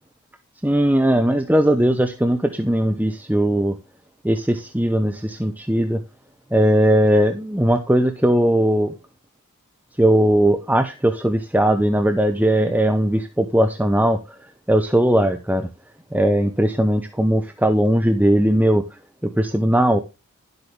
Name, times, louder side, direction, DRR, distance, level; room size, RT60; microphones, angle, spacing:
voice 1, 0.6-3.8 4.2-6.0 6.5-8.9 10.0-14.2 14.7-15.7 16.1-18.8 19.2-20.0, right 1 dB, 5° right, 6 dB, 0.8 m, -18 dB
12.0 x 8.1 x 3.3 m, 0.28 s
head